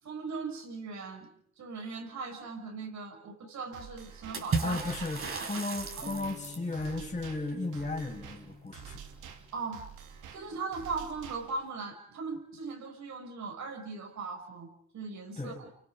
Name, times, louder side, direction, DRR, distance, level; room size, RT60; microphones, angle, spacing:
voice 1, 0.0-1.3 1.6-5.1 5.5-5.6 6.0-6.2 9.5-9.9 10.3-15.6, right 4 dB, 70° right, 3 dB, 6.4 m, -39 dB
sound 1, 3.7-11.7, right 7 dB, 90° right, 2.8 m, -49 dB
Water / Splash splatter, 4.3-6.7, right 4 dB, 45° right, 4.6 m, -34 dB
voice 2, 4.6-9.0 15.4-15.6, left 2 dB, 25° left, -1 dB, 6.0 m, -35 dB
sound 2, 6.0-9.8, left 4 dB, ahead, 4.1 m, -50 dB
29.5 x 25.0 x 5.1 m, 0.66 s
cardioid pair, 90°, 30 cm